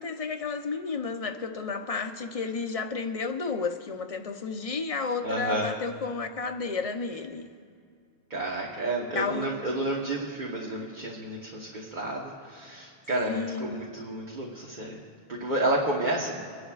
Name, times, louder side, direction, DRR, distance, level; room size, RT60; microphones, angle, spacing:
voice 1, 0.0-7.5 9.2-9.5 13.3-13.8, left 4 dB, 40° left, 0.7 m, -32 dB
voice 2, 5.2-5.7 8.3-15.0 15.3-16.5, right 1 dB, 50° right, 1.3 m, -31 dB
28.5 x 11.0 x 2.4 m
omnidirectional pair, 1.1 m